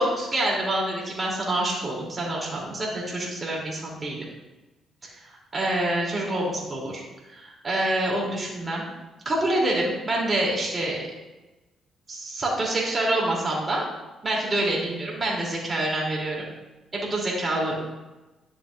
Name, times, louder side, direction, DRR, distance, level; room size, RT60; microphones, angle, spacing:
voice 1, 0.0-4.2 5.3-7.0 7.3-8.8 9.2-11.0 12.1-13.8 14.2-16.4 16.9-17.8, right 1 dB, 30° right, -2 dB, 2.8 m, -26 dB
11.0 x 7.1 x 2.5 m, 1.1 s
cardioid pair, 90°, 0 cm